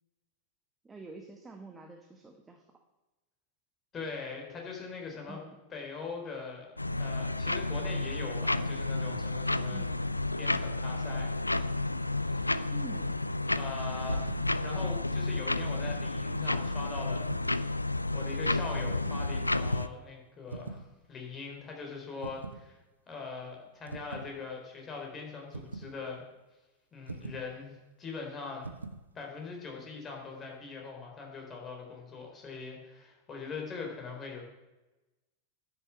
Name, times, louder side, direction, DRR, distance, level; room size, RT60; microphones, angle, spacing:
voice 1, 0.8-2.6 5.2-5.6 9.7-10.0 12.7-13.2, right 3 dB, 15° right, 3 dB, 1.2 m, -47 dB
voice 2, 3.9-5.4 5.7-9.8 10.4-11.4 12.3-12.6 13.6-17.7 18.1-22.8 23.1-26.2 26.9-28.7 29.1-34.4, left 4 dB, 25° left, 1 dB, 3.7 m, -42 dB
sound 1, 6.8-19.9, left 2 dB, 85° left, 0.4 m, -31 dB
sound 2, 14.0-14.5 15.4-16.1 17.3-17.7 18.8-19.3 20.5-20.9 22.2-22.6 23.9-24.3 25.5-25.9 27.1-27.5 28.6-29.1, right 3 dB, 80° right, 0.8 m, -42 dB
10.5 x 7.0 x 8.3 m, 1.1 s
figure-of-eight pair, 90°, 0 cm